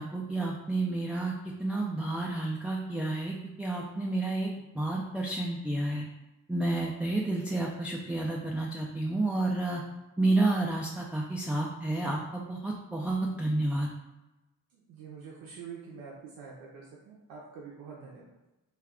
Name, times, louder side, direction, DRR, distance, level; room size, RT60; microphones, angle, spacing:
voice 1, 0.0-1.3 1.6-6.0 6.5-9.8 10.2-13.9, right 2 dB, 5° right, -2 dB, 0.3 m, -30 dB
voice 2, 14.7-18.4, right 5 dB, 90° right, -3 dB, 0.5 m, -46 dB
2.3 x 2.3 x 3.5 m, 1.0 s
supercardioid pair, 55°, 34 cm